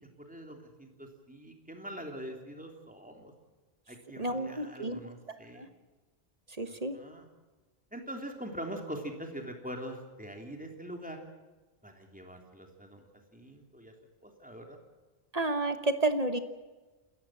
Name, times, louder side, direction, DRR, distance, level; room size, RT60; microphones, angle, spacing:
voice 1, 0.2-3.3 3.9-5.7 6.6-7.3 7.9-11.2 11.8-13.0 13.3-13.9 14.2-14.8, right 1 dB, 5° right, 3 dB, 3.3 m, -43 dB
voice 2, 4.2-5.0 5.3-5.7 6.6-6.9 15.3-16.4, right 2 dB, 40° right, 9 dB, 1.3 m, -31 dB
28.5 x 14.0 x 7.6 m, 1.2 s
omnidirectional pair, 1.1 m